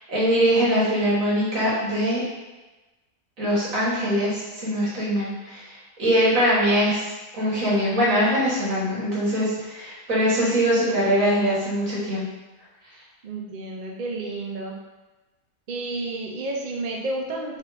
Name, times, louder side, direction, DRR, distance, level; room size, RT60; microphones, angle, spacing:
voice 1, 0.1-2.2 3.4-5.6 6.0-7.0 7.3-12.3, equal, 55° right, -7 dB, 1.9 m, -22 dB
voice 2, 13.2-14.8 15.7-17.6, right 2 dB, 75° right, -1 dB, 0.4 m, -31 dB
3.6 x 3.5 x 4.0 m, 1.2 s
omnidirectional pair, 1.7 m